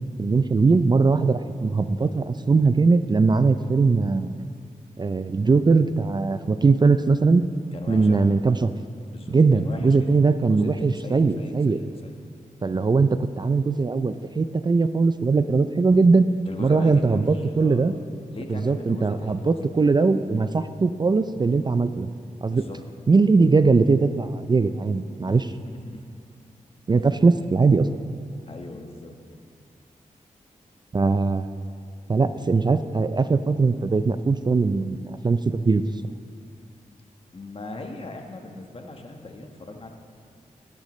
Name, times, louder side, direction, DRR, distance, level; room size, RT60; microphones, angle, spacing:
voice 1, 0.2-4.4 5.0-7.5 7.9-8.7 9.3-11.8 12.6-16.3 16.6-17.9 18.5-22.1 22.4-22.6 23.1-25.5 26.9-27.9 30.9-31.6 32.1-35.8, right 4 dB, 30° right, 11 dB, 0.4 m, -20 dB
voice 2, 7.7-8.3 9.1-10.1 10.5-12.2 16.5-18.0 18.3-19.6 22.5-22.8 25.3-26.0 28.5-29.1 37.3-39.9, left 2 dB, 45° left, 3 dB, 1.2 m, -39 dB
16.0 x 10.5 x 3.1 m, 2.2 s
cardioid pair, 60°, 14 cm